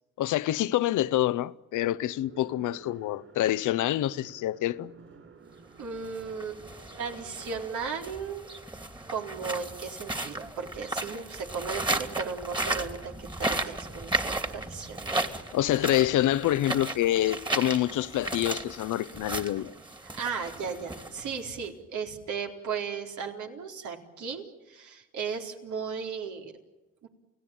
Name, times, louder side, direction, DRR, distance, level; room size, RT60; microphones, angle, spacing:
voice 1, 0.2-4.9 15.5-19.7, left 13 dB, 80° left, 0.9 m, -27 dB
sound 1, 1.8-7.5, right 5 dB, 45° right, 8.0 m, -52 dB
voice 2, 5.8-6.6 7.0-8.5 9.1-15.1 20.2-26.5 27.0-27.1, right 6 dB, 75° right, 4.0 m, -36 dB
sound 2, 5.9-21.6, right 2 dB, 15° right, 2.5 m, -35 dB
29.5 x 17.5 x 8.9 m
cardioid pair, 90°, 30 cm